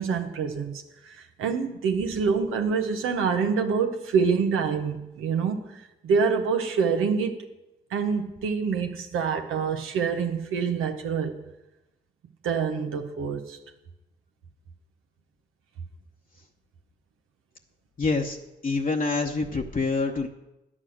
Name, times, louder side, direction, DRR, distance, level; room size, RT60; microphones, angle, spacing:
voice 1, 0.0-5.6 6.0-7.3 7.9-11.4 12.4-13.6, right 5 dB, 90° right, 5 dB, 1.0 m, -26 dB
voice 2, 18.0-18.4 18.6-20.3, left 3 dB, 40° left, 1 dB, 1.0 m, -26 dB
10.0 x 7.5 x 6.4 m, 0.95 s
supercardioid pair, 40°, 21 cm